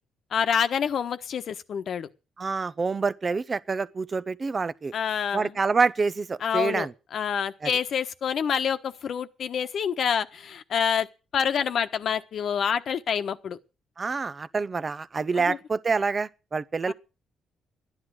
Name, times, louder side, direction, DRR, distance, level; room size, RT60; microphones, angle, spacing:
voice 1, 0.3-2.1 4.9-5.5 6.4-11.1 11.3-13.6 15.3-15.6 16.9-17.0, left 7 dB, 60° left, 1.2 m, -27 dB
voice 2, 2.4-4.9 5.3-6.9 7.6-7.7 14.0-16.9, right 4 dB, 35° right, 0.7 m, -27 dB
13.5 x 10.5 x 6.3 m
cardioid pair, 90°, 0 cm